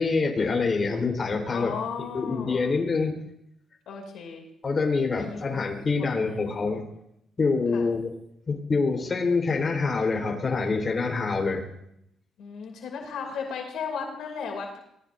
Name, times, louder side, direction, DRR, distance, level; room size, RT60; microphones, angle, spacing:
voice 1, 0.0-1.8 2.1-3.2 4.6-6.9 7.4-8.1 8.5-11.7, left 4 dB, 35° left, 2 dB, 3.8 m, -26 dB
voice 2, 1.5-2.7 3.9-4.4 5.1-5.5 6.0-6.4 7.7-7.8 12.4-14.8, left 6 dB, 80° left, 2 dB, 2.8 m, -35 dB
24.0 x 19.0 x 2.6 m, 0.78 s
cardioid pair, 90°, 0 cm